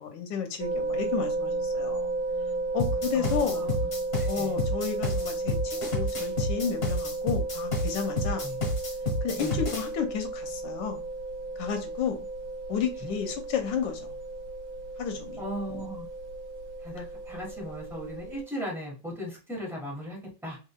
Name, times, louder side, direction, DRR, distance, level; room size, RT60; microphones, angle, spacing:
voice 1, 0.0-2.1 2.7-3.7 4.3-8.4 9.2-11.0 11.6-12.3 12.7-14.1 15.0-15.4, left 7 dB, 75° left, 1.4 m, -32 dB
sound 1, 0.6-18.4, right 2 dB, 80° right, 1.3 m, -34 dB
sound 2, 2.8-9.9, left 1 dB, 50° left, 1.5 m, -30 dB
voice 2, 3.1-3.9 4.2-4.6 8.2-8.6 9.3-9.6 13.0-13.1 15.4-16.1 16.8-20.6, equal, ahead, 1.1 m, -38 dB
3.8 x 3.3 x 2.3 m
omnidirectional pair, 2.0 m